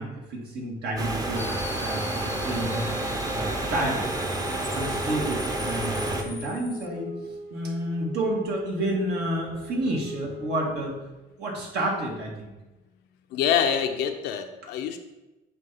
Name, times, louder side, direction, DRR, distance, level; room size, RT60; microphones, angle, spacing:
voice 1, 0.0-2.9 3.3-4.1 4.7-7.1 7.5-11.0 11.4-12.5, right 1 dB, 75° right, -2 dB, 2.1 m, -30 dB
sound 1, 1.0-6.2, right 2 dB, 20° right, 0.8 m, -29 dB
sound 2, 1.4-6.9, left 3 dB, 15° left, 0.4 m, -41 dB
Wind instrument woodwind instrument, 4.4-11.2, left 2 dB, 55° right, 1.2 m, -40 dB
voice 2, 13.3-15.0, left 8 dB, 90° left, 6 dB, 0.8 m, -25 dB
8.0 x 2.9 x 5.6 m, 1.1 s
cardioid pair, 110°, 17 cm